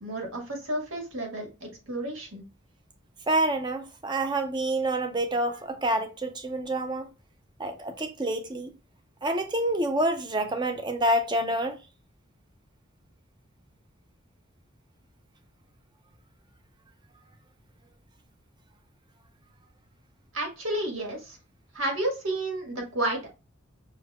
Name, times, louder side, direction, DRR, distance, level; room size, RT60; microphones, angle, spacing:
voice 1, 0.0-2.4 20.3-21.4 21.7-23.3, right 1 dB, 85° right, 1.6 m, -31 dB
voice 2, 3.3-7.1 7.6-8.7 9.2-11.8, right 1 dB, 20° right, 0.6 m, -27 dB
5.5 x 3.2 x 2.3 m
head